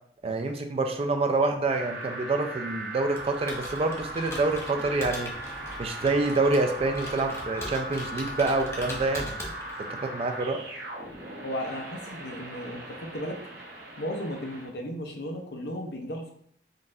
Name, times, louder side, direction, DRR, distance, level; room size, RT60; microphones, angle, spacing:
voice 1, 0.2-5.3 5.8-9.3 10.0-10.6, right 3 dB, 35° right, 5 dB, 0.3 m, -27 dB
sound 1, 1.7-14.7, right 2 dB, 65° right, 0.9 m, -39 dB
Computer keyboard, 3.1-10.0, left 1 dB, 15° left, 0.6 m, -41 dB
voice 2, 11.4-13.4 14.0-16.3, equal, 65° left, 2 dB, 0.6 m, -35 dB
3.8 x 2.4 x 2.6 m, 0.64 s
head